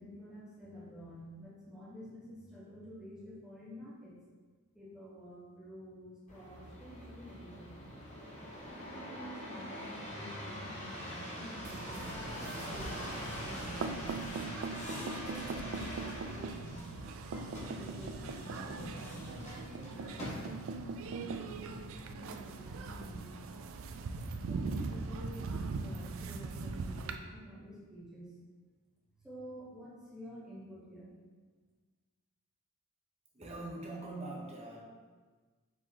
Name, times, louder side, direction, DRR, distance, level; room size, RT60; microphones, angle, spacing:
voice 1, 0.0-4.2 4.7-7.9 8.6-14.1 14.8-16.8 17.7-23.3 24.5-28.3 29.2-31.1, equal, 5° right, -8 dB, 1.1 m, -50 dB
sound 1, 6.3-20.8 21.4-21.9, left 1 dB, 30° left, 0.9 m, -44 dB
sound 2, 11.6-27.2, right 4 dB, 65° right, 0.3 m, -40 dB
voice 2, 33.3-34.8, right 2 dB, 30° right, -3 dB, 0.8 m, -42 dB
4.7 x 3.9 x 2.8 m, 1.4 s
head